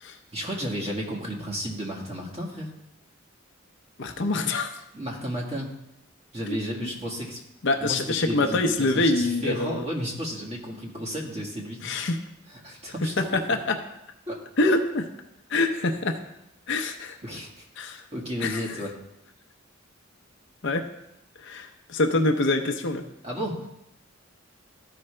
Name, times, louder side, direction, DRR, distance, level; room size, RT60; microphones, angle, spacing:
voice 1, 0.3-2.7 4.9-5.7 6.3-7.4 7.8-12.0 12.5-13.6 14.3-14.4 17.2-17.6 18.1-18.9 23.2-23.7, equal, 30° right, -1 dB, 1.6 m, -33 dB
voice 2, 4.0-4.7 6.5-6.9 7.6-9.8 11.8-12.2 13.2-13.8 14.6-15.1 15.5-16.2 16.7-17.1 17.8-18.0 18.4-18.6 20.6-20.8 21.4-23.0, left 2 dB, 60° left, 5 dB, 0.7 m, -25 dB
13.5 x 4.9 x 3.3 m, 0.85 s
head